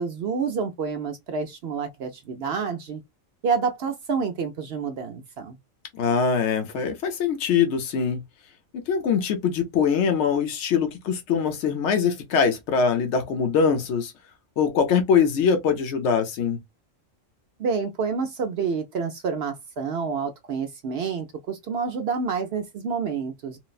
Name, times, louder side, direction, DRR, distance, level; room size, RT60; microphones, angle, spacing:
voice 1, 0.0-3.0 3.4-5.6 17.6-23.6, right 5 dB, 65° right, 0.7 m, -28 dB
voice 2, 5.9-8.2 8.7-14.1 14.6-16.6, left 6 dB, 65° left, 1.1 m, -23 dB
3.9 x 2.1 x 2.4 m
omnidirectional pair, 1.4 m